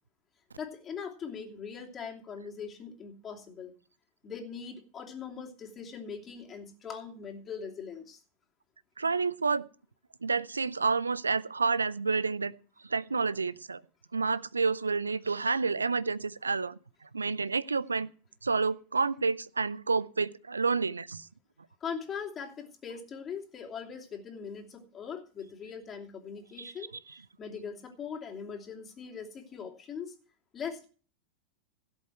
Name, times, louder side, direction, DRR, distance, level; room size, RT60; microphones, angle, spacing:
voice 1, 0.6-3.7 4.2-8.2 21.8-26.9 27.4-30.1 30.5-30.9, left 6 dB, 25° left, 1 dB, 2.8 m, -41 dB
voice 2, 9.0-9.6 10.2-12.5 12.9-13.8 14.1-16.7 17.1-18.1 18.4-21.3 26.6-26.7, right 4 dB, 75° right, 20 dB, 0.5 m, -29 dB
17.0 x 8.0 x 4.6 m, 0.40 s
figure-of-eight pair, 90°, 0 cm